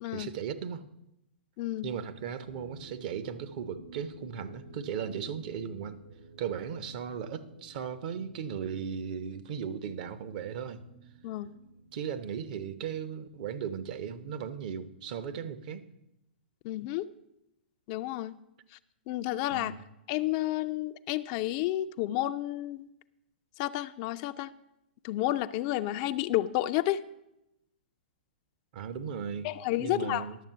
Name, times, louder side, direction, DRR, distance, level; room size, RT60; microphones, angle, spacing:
voice 1, 0.1-0.8 1.8-6.0 6.4-10.8 11.9-15.8 19.5-19.8 28.7-29.5 29.8-30.4, right 7 dB, 50° right, 0.7 m, -37 dB
voice 2, 1.6-1.9 11.2-11.5 16.6-17.0 17.9-18.4 19.1-19.7 20.1-22.9 23.6-24.5 25.0-27.0 29.4-30.3, left 15 dB, 40° left, 0.4 m, -31 dB
sound 1, 2.4-13.6, right 1 dB, 75° right, 3.2 m, -53 dB
11.0 x 7.2 x 5.5 m
figure-of-eight pair, 115°, 6 cm